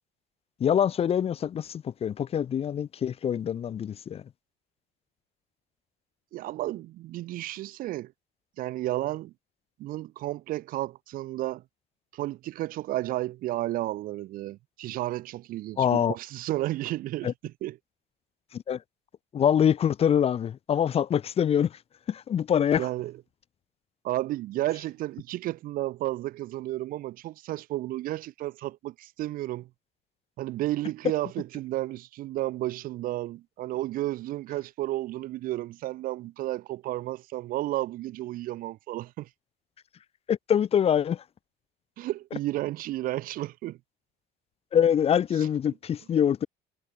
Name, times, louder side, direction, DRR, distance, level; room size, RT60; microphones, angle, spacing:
voice 1, 0.6-4.2 15.8-16.2 17.2-17.3 18.5-18.8 19.3-21.8 22.1-22.9 40.3-41.2 44.7-46.5, left 9 dB, 30° left, 0.9 m, -24 dB
voice 2, 6.3-8.1 8.6-9.3 9.8-11.6 12.1-17.8 22.8-23.1 24.0-29.7 30.4-39.3 42.0-43.8, right 16 dB, 50° right, 0.5 m, -32 dB
cardioid pair, 150°, 19 cm